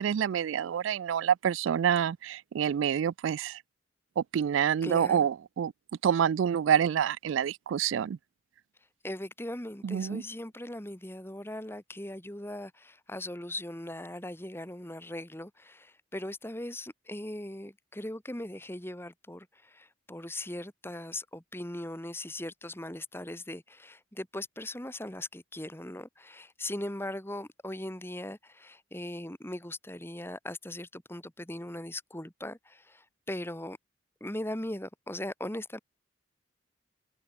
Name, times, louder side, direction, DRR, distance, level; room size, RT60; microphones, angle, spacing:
voice 1, 0.0-3.6 4.2-5.7 6.0-8.2 9.8-10.2, right 8 dB, 75° right, 0.3 m, -27 dB
voice 2, 4.8-5.3 9.0-33.8 34.2-35.8, left 1 dB, 10° left, 1.9 m, -39 dB
head